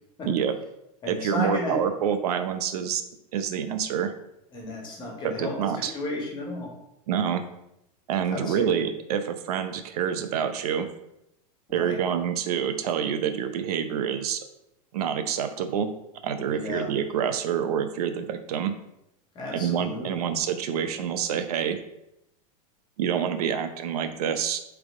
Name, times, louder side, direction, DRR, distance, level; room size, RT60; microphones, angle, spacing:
voice 1, 0.3-0.6 1.1-3.0 3.3-4.1 5.2-5.9 7.1-7.4 8.1-10.9 11.7-14.4 14.9-15.9 16.2-18.8 19.5-21.8 23.0-24.6, right 8 dB, 80° right, 8 dB, 0.7 m, -27 dB
voice 2, 1.0-1.8 4.5-6.7 8.3-8.7 11.7-12.0 16.5-16.9 19.4-20.2, left 2 dB, 25° left, -1 dB, 1.6 m, -33 dB
7.8 x 3.5 x 3.7 m, 0.83 s
supercardioid pair, 150°, 19 cm